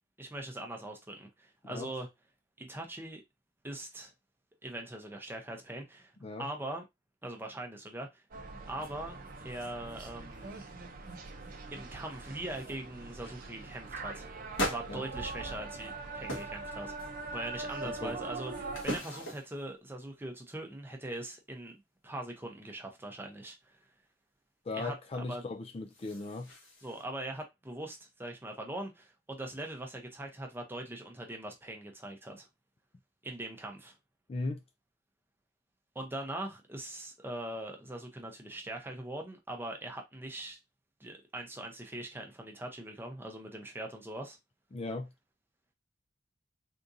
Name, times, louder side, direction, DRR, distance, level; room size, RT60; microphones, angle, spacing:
voice 1, 0.2-2.1 2.6-3.2 3.6-4.1 4.6-6.1 6.4-6.8 7.2-8.2 8.7-10.7 11.7-14.3 14.6-17.0 17.3-21.8 22.0-23.8 24.7-25.4 26.8-32.5 33.2-33.9 35.9-40.6 41.0-44.4, right 1 dB, 10° right, 0.7 m, -41 dB
sound 1, 8.3-18.8, right 3 dB, 50° right, 0.6 m, -42 dB
sound 2, 8.8-8.9 9.3-10.1 10.3-10.7 11.1-11.5 12.1-12.2 12.5-12.8 13.2-13.4 14.5-15.9 16.3-16.6 17.0-17.5 18.0-19.6 25.6-27.0, equal, 80° left, 1.4 m, -40 dB
voice 2, 17.8-18.2 24.7-26.5 34.3-34.6 44.7-45.1, left 3 dB, 30° left, 0.4 m, -37 dB
3.6 x 2.6 x 2.6 m
head